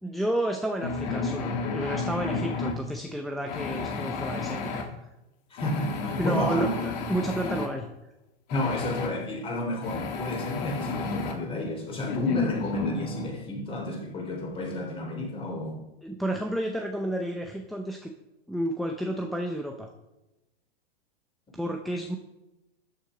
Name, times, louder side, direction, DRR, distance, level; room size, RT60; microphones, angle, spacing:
voice 1, 0.0-4.9 6.1-7.9 16.0-18.1 18.5-19.9 21.5-22.2, right 1 dB, ahead, 2 dB, 0.6 m, -31 dB
sound 1, 0.8-2.8 3.5-4.8 5.6-7.7 8.5-9.1 9.8-11.3 12.1-13.3, left 4 dB, 45° left, 2.2 m, -32 dB
voice 2, 5.5-6.7 8.5-15.8, left 1 dB, 15° left, 2 dB, 3.6 m, -31 dB
13.5 x 9.3 x 5.0 m, 0.98 s
hypercardioid pair, 150°, 32 cm